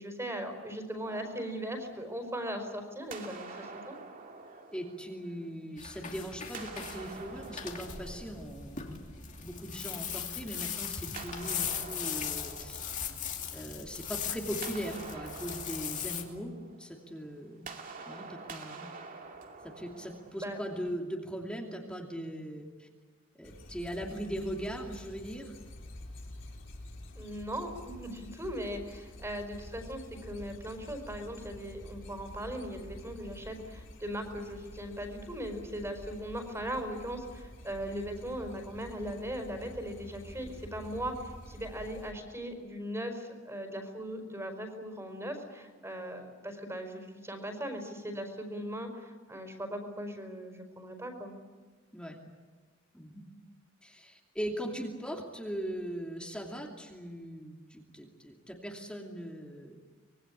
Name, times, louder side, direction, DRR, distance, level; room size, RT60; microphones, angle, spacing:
voice 1, 0.0-4.0 20.4-20.6 27.1-51.3, equal, 15° right, 4 dB, 4.8 m, -39 dB
sound 1, 1.0-2.7 3.1-5.9 6.4-9.3 11.1-13.9 14.2-20.9, right 4 dB, 45° right, 2.4 m, -48 dB
voice 2, 4.7-9.1 9.4-12.8 13.5-17.7 18.1-18.9 19.6-22.9 23.4-25.5 51.9-52.2 52.9-53.2 53.8-59.8, equal, 5° left, 0 dB, 2.6 m, -40 dB
sound 2, 5.8-16.2, left 8 dB, 40° left, 2.7 m, -39 dB
sound 3, 23.4-42.1, left 1 dB, 65° left, 4.5 m, -48 dB
25.5 x 22.5 x 8.6 m, 1.4 s
head